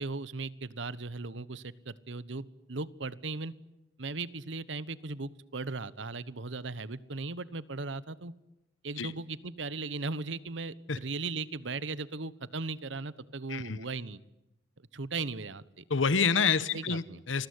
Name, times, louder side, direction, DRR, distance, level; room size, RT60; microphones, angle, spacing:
voice 1, 0.0-3.5 4.0-8.3 8.8-14.2 14.9-15.8 16.7-17.2, right 3 dB, 75° right, 18 dB, 1.1 m, -37 dB
voice 2, 15.9-17.5, left 5 dB, 85° left, 15 dB, 1.0 m, -28 dB
29.0 x 21.0 x 9.7 m, 0.94 s
head